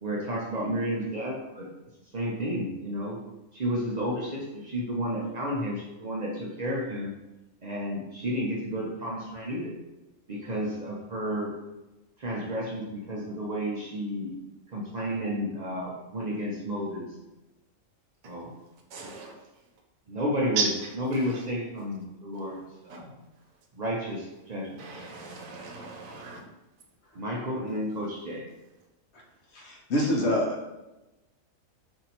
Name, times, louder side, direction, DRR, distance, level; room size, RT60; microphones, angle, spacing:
voice 1, 0.0-1.7 2.1-3.2 3.5-7.1 7.6-9.8 10.3-11.6 12.2-14.4 14.7-17.1 18.2-18.5 19.0-19.1 20.1-20.7 21.0-23.1 23.7-24.8 27.1-28.5, equal, 50° right, -4 dB, 0.5 m, -32 dB
voice 2, 18.9-19.3 20.6-20.7 21.2-21.4 22.9-23.0 24.8-26.4, right 5 dB, 90° right, 1 dB, 1.1 m, -34 dB
voice 3, 29.5-30.7, left 1 dB, 65° left, -1 dB, 0.9 m, -26 dB
2.7 x 2.6 x 4.2 m, 1.0 s
omnidirectional pair, 1.4 m